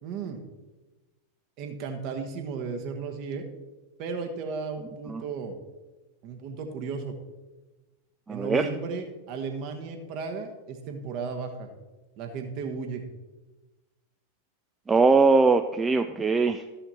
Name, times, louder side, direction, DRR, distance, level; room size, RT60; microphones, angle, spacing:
voice 1, 0.0-0.4 1.6-3.5 4.0-5.5 6.2-7.2 8.3-11.7 12.2-13.0, right 5 dB, 40° right, 5 dB, 1.3 m, -34 dB
voice 2, 8.3-8.7 14.9-16.6, right 4 dB, 15° right, 8 dB, 0.4 m, -21 dB
13.5 x 5.7 x 4.2 m, 1.1 s
figure-of-eight pair, 90°, 0 cm